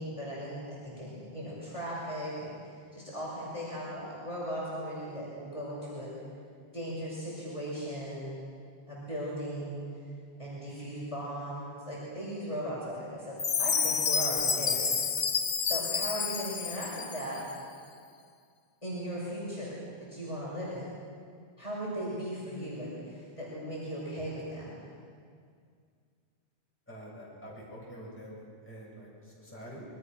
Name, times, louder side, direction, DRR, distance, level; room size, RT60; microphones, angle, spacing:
voice 1, 0.0-6.1 6.7-8.4 8.9-9.8 10.4-14.9 15.6-17.4 18.8-19.8 20.1-20.9 21.6-24.8, equal, 30° left, -7 dB, 6.3 m, -37 dB
Chime, 13.4-17.4, left 6 dB, 65° left, 1.2 m, -29 dB
voice 2, 26.9-29.8, equal, 10° left, -6 dB, 7.3 m, -46 dB
27.0 x 23.0 x 6.3 m, 2.2 s
omnidirectional pair, 1.1 m